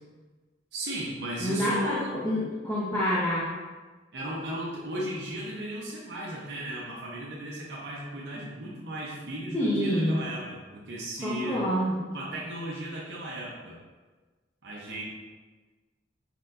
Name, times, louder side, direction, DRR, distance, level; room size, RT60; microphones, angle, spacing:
voice 1, 0.7-2.2 4.1-11.7 12.1-13.8 14.6-15.0, right 1 dB, 65° right, -5 dB, 0.7 m, -36 dB
voice 2, 1.4-2.0 2.2-3.5 8.4-8.5 9.5-10.2 11.2-12.1, equal, 15° left, -9 dB, 0.8 m, -27 dB
4.4 x 4.4 x 2.5 m, 1.3 s
head